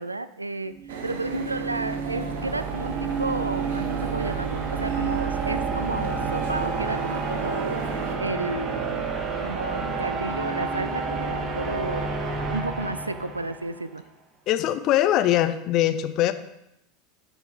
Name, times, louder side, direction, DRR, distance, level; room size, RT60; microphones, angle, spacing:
voice 1, 0.0-7.8 8.1-14.0, right 2 dB, 85° right, 14 dB, 0.3 m, -32 dB
sound 1, 0.7-13.8, right 4 dB, 35° right, 1.1 m, -30 dB
sound 2, 0.9-8.2, right 5 dB, 65° right, 0.9 m, -37 dB
voice 2, 14.5-16.3, left 13 dB, 45° left, 10 dB, 0.7 m, -22 dB
12.5 x 4.7 x 3.9 m, 0.84 s
figure-of-eight pair, 80°, 0 cm